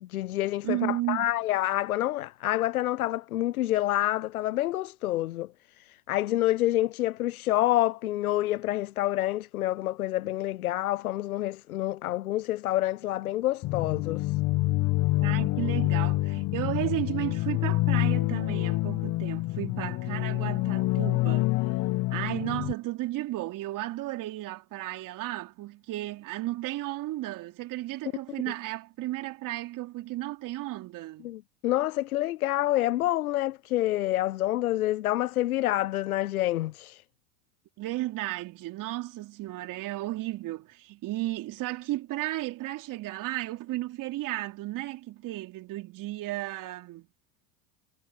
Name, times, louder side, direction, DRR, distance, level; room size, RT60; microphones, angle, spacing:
voice 1, 0.0-5.5 5.8-14.4 31.2-37.0, left 15 dB, 90° left, 0.6 m, -28 dB
voice 2, 0.6-1.3 15.2-21.6 22.1-31.3 37.8-47.1, right 17 dB, 50° right, 3.6 m, -34 dB
sound 1, 13.6-22.7, left 20 dB, 40° left, 0.7 m, -27 dB
hypercardioid pair, 90°, 42 cm